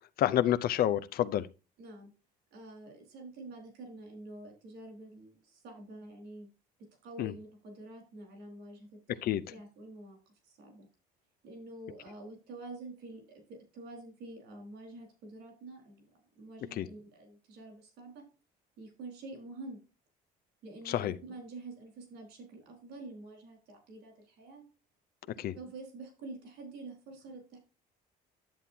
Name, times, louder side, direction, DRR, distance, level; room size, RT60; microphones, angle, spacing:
voice 1, 0.2-1.5 7.2-7.3 9.2-9.4 16.8-16.9 20.9-21.1 25.4-25.5, left 12 dB, 65° left, 0.6 m, -28 dB
voice 2, 1.8-2.1 2.5-6.5 6.8-10.2 10.4-10.9 11.4-16.1 16.3-18.2 18.8-19.8 20.6-24.6 25.3-27.6, right 2 dB, 80° right, 4.3 m, -47 dB
10.5 x 7.5 x 2.8 m
cardioid pair, 110°, 17 cm